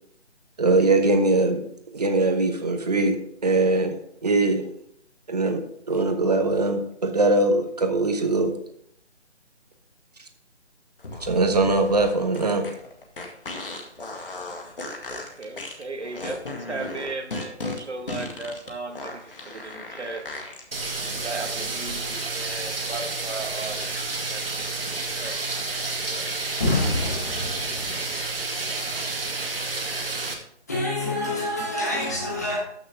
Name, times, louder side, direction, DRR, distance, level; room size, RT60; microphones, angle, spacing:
voice 1, 0.6-1.6 1.9-4.0 4.2-4.6 5.3-8.5 11.2-12.6, right 2 dB, 35° right, 1.2 m, -21 dB
sound 1, 11.0-20.6, left 2 dB, 50° left, 2.0 m, -36 dB
voice 2, 15.1-20.2 21.1-25.4 25.6-26.3, right 3 dB, 75° right, 1.6 m, -36 dB
sound 2, 20.7-30.3, right 3 dB, 55° right, 1.9 m, -30 dB
voice 3, 26.6-28.2 30.7-32.6, left 1 dB, 15° left, 1.2 m, -27 dB
13.5 x 6.5 x 3.5 m
figure-of-eight pair, 170°, 35 cm